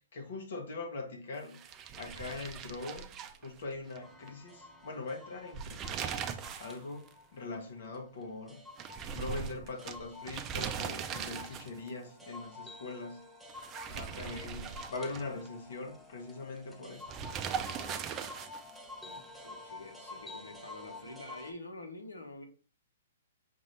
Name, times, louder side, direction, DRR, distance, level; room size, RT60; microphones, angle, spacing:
voice 1, 0.1-6.3 6.6-8.6 9.1-13.2 13.9-17.2, left 3 dB, 65° left, 1.3 m, -42 dB
sound 1, 1.5-4.0 4.3-4.4 5.4-6.8 7.1-7.2 8.8-11.9 13.5-15.5 17.1-18.8, right 7 dB, 25° right, 0.5 m, -39 dB
sound 2, 4.0-21.5, left 2 dB, ahead, 0.8 m, -50 dB
voice 2, 19.0-22.5, left 2 dB, 90° left, 1.2 m, -47 dB
5.9 x 2.6 x 3.3 m
hypercardioid pair, 125°, 0 cm